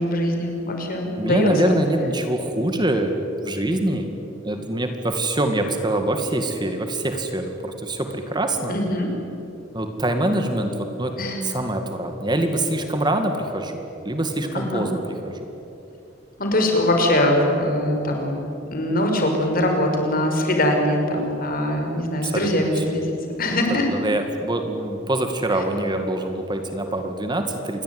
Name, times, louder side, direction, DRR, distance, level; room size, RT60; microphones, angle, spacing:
voice 1, 0.0-1.8 8.7-9.1 11.2-11.4 14.5-14.8 16.4-18.4 18.7-23.9, left 1 dB, 50° left, 3 dB, 5.5 m, -22 dB
voice 2, 1.2-3.1 3.4-4.1 4.4-8.7 9.7-11.1 11.4-15.4 22.2-22.5 22.8-22.9 23.7-27.8, right 1 dB, 25° right, 6 dB, 2.1 m, -24 dB
27.5 x 21.5 x 9.6 m, 2.8 s
head